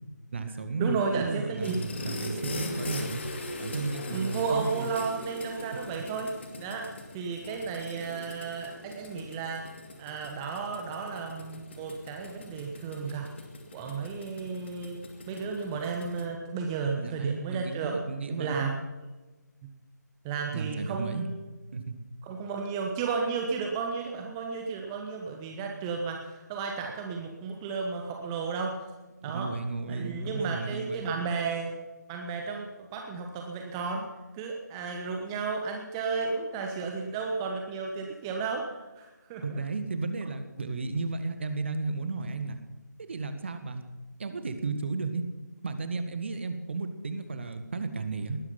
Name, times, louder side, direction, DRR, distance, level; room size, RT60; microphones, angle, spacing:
voice 1, 0.3-3.2 3.6-4.9 17.0-18.6 20.5-21.3 21.7-22.0 29.2-31.0 39.4-42.6 43.0-43.8 44.2-45.2 45.6-48.4, right 3 dB, 40° right, 9 dB, 1.8 m, -33 dB
voice 2, 0.8-1.8 4.1-6.3 6.6-9.7 10.0-13.3 13.7-15.0 15.3-18.0 18.3-18.7 20.2-21.3 22.2-28.8 29.2-29.5 29.9-31.8 32.1-32.7 32.9-34.0 34.4-39.6, right 5 dB, 15° right, 2 dB, 1.1 m, -33 dB
sound 1, 1.6-16.3, left 2 dB, 35° left, 2.6 m, -41 dB
19.5 x 12.5 x 5.8 m, 1.2 s
figure-of-eight pair, 155°, 10 cm